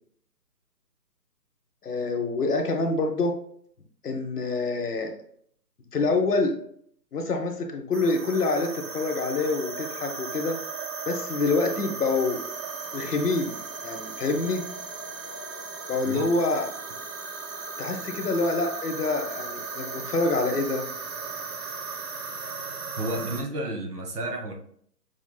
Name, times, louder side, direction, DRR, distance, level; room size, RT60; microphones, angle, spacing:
voice 1, 1.8-3.4 4.0-5.1 5.9-6.6 7.1-10.6 11.1-12.4 12.9-13.6 13.8-14.6 15.9-16.7 17.8-20.9, left 3 dB, 70° left, 3 dB, 1.0 m, -26 dB
sound 1, 7.9-23.4, right 4 dB, 85° right, 1.0 m, -36 dB
voice 2, 23.0-24.5, right 1 dB, 70° right, 2 dB, 1.4 m, -31 dB
6.3 x 3.2 x 2.2 m, 0.63 s
hypercardioid pair, 160°, 48 cm